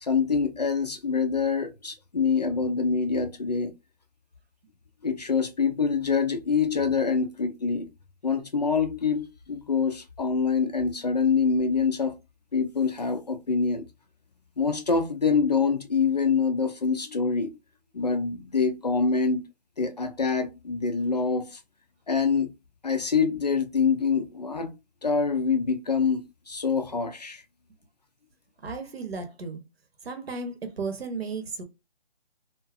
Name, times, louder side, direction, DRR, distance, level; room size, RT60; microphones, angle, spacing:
voice 1, 0.0-3.7 5.0-7.9 8.2-12.2 12.5-13.9 14.6-17.6 17.9-19.5 19.8-21.6 22.1-22.5 22.8-24.8 25.0-27.4, left 5 dB, 40° left, 0.4 m, -25 dB
voice 2, 28.6-29.6 30.0-31.6, right 4 dB, 70° right, 0.9 m, -34 dB
2.6 x 2.4 x 2.3 m
hypercardioid pair, 165°, 32 cm